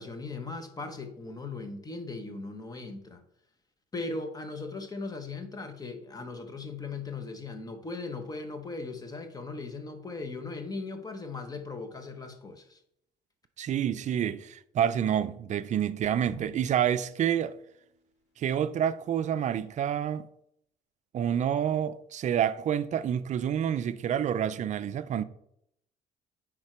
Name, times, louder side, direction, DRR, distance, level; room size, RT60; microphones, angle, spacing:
voice 1, 0.0-3.2 3.9-12.8, left 3 dB, 20° left, 1.0 m, -38 dB
voice 2, 13.6-17.6 18.4-20.3 21.1-25.2, right 9 dB, 45° right, 0.5 m, -28 dB
Drum, 16.3-18.3, right 2 dB, 80° left, 2.5 m, -51 dB
9.6 x 3.7 x 4.4 m
cardioid pair, 110°, 17 cm